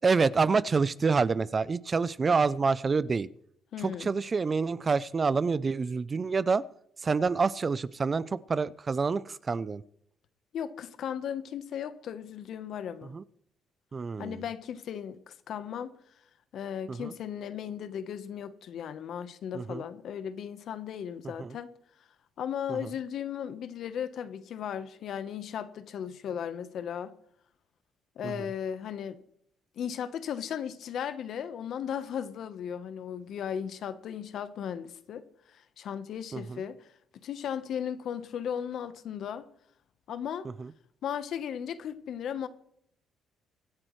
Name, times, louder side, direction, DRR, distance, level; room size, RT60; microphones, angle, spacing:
voice 1, 0.0-3.3 3.8-6.6 7.0-9.8 13.1-13.2 13.9-14.4 16.9-17.1 19.5-19.8 21.4-21.5 22.7-22.8 28.2-28.3 36.3-36.6, right 4 dB, 30° right, 0.4 m, -27 dB
voice 2, 3.7-4.1 10.5-13.1 14.2-15.9 16.5-21.7 22.4-27.2 28.2-29.2 29.8-36.9 37.2-39.5 40.1-40.5 41.0-42.5, left 8 dB, 65° left, 1.0 m, -36 dB
24.5 x 10.5 x 3.2 m
cardioid pair, 110°, 0 cm